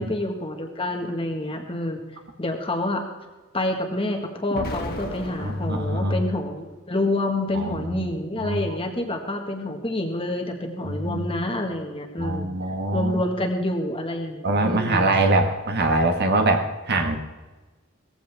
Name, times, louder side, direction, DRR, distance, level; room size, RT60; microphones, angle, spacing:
voice 1, 0.0-2.0 2.4-3.0 3.5-12.5 12.9-15.1, left 1 dB, 25° left, 4 dB, 1.8 m, -28 dB
Explosion, 4.5-6.6, left 1 dB, 45° left, 2.3 m, -35 dB
voice 2, 5.4-6.2 7.5-8.1 8.4-8.6 10.8-11.3 12.2-13.2 14.4-17.2, right 2 dB, 50° right, 5 dB, 1.6 m, -23 dB
18.5 x 15.5 x 3.6 m, 1.2 s
head